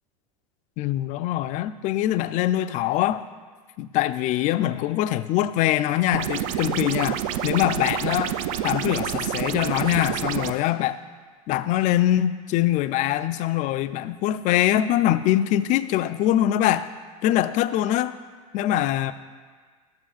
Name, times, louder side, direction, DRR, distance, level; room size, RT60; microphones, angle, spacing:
voice 1, 0.8-3.2 3.8-8.4 8.6-11.0 11.5-16.9 17.2-18.2 18.5-19.1, left 13 dB, 40° left, 13 dB, 0.4 m, -23 dB
sound 1, 6.1-10.5, right 10 dB, 65° right, 0.4 m, -28 dB
12.5 x 6.9 x 2.4 m, 1.5 s
hypercardioid pair, 95°, 19 cm